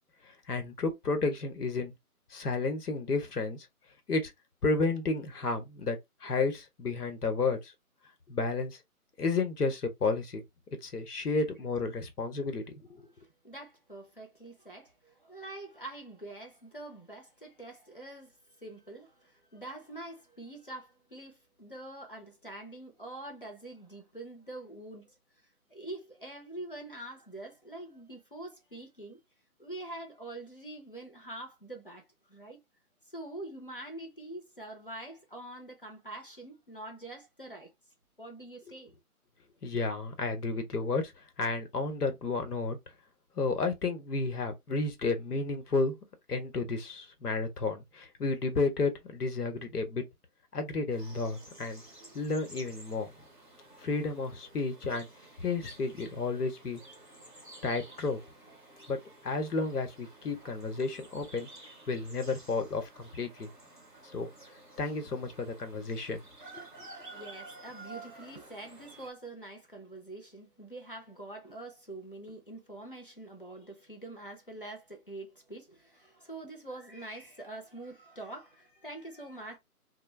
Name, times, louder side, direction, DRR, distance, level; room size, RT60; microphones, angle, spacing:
voice 1, 0.2-1.9 2.3-3.7 4.1-4.3 4.6-7.7 8.3-8.8 9.2-10.4 10.8-13.1 39.6-41.0 41.4-42.8 43.4-46.0 46.3-50.0 50.5-51.8 52.1-53.1 53.8-55.1 55.4-56.8 57.6-58.2 58.9-61.5 61.9-63.5 64.1-64.3 64.8-66.2 66.5-66.6, left 3 dB, 85° left, 1.0 m, -32 dB
voice 2, 13.2-25.2 25.7-29.2 29.6-32.6 33.1-37.7 38.2-38.9 67.1-79.6, right 2 dB, 40° left, 0.5 m, -45 dB
sound 1, 50.9-69.1, right 2 dB, 35° right, 0.6 m, -52 dB
2.3 x 2.2 x 3.2 m
hypercardioid pair, 175°, 45 cm